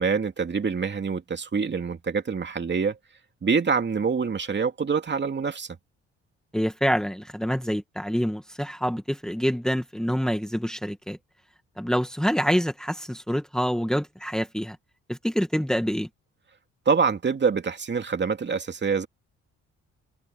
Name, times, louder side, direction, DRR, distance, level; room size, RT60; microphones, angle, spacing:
voice 1, 0.0-3.0 3.4-5.7 16.9-19.1, right 5 dB, 35° right, 2.7 m, -25 dB
voice 2, 6.5-11.2 11.8-14.8 15.1-16.1, equal, ahead, 2.1 m, -26 dB
cardioid pair, 90°, 30 cm